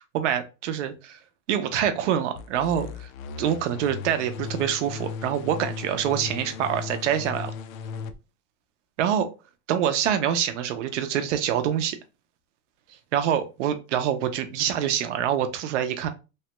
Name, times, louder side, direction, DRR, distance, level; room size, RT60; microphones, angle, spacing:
voice 1, 0.1-1.2 1.5-3.1 3.4-7.5 9.0-9.3 9.7-12.0 13.1-16.1, right 9 dB, 60° right, 8 dB, 0.6 m, -25 dB
sound 1, 2.4-8.1, left 5 dB, 75° left, 0.6 m, -36 dB
3.1 x 2.2 x 2.9 m, 0.29 s
supercardioid pair, 180°, 41 cm